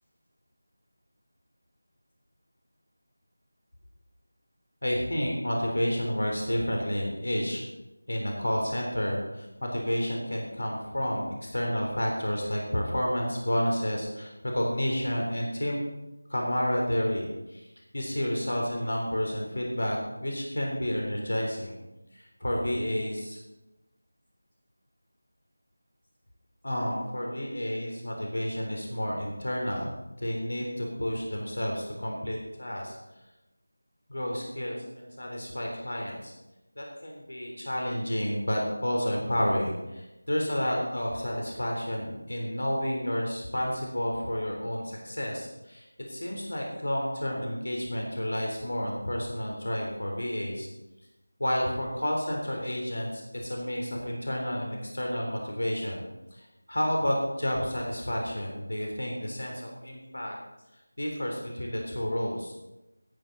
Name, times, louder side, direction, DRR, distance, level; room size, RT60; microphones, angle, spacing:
voice 1, 4.8-7.6 8.1-15.8 16.3-17.7 17.9-21.7 22.1-23.4 26.6-29.9 30.2-33.0 34.1-36.3 36.8-50.7 51.4-56.0 56.3-60.3 61.0-62.5, equal, 65° left, 0 dB, 3.5 m, -30 dB
16.5 x 10.5 x 4.0 m, 0.99 s
figure-of-eight pair, 170°, 0 cm